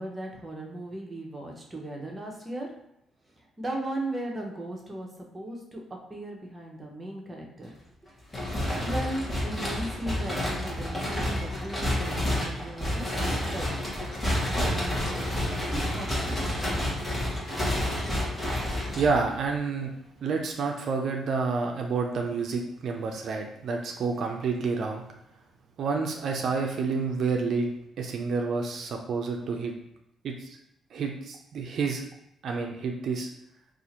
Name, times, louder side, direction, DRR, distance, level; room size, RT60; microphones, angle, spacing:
voice 1, 0.0-2.7 3.4-5.8 6.1-7.7 8.8-13.9 14.6-15.4 15.7-16.4, right 1 dB, 20° right, 0 dB, 0.8 m, -37 dB
sound 1, 8.3-19.5, left 1 dB, 20° left, 1.1 m, -29 dB
voice 2, 19.0-19.9 20.2-25.0 25.8-27.7 28.0-29.7 30.2-30.6 30.9-32.0 32.4-33.3, right 4 dB, 60° right, 2 dB, 0.4 m, -29 dB
2.7 x 2.5 x 4.2 m, 0.79 s
cardioid pair, 90°, 0 cm